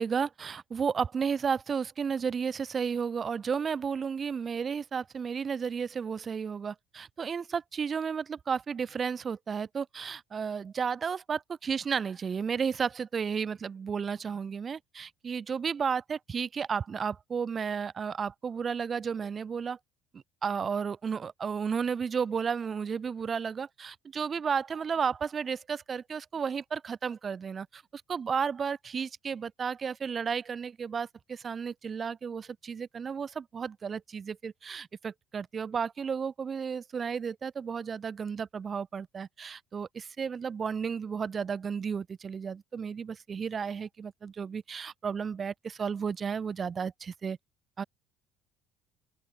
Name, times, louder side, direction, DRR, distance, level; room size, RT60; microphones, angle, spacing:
voice 1, 0.0-19.8 20.1-47.4 47.8-47.9, right 6 dB, 40° right, 0.8 m, -33 dB
open air
hypercardioid pair, 70°, 0 cm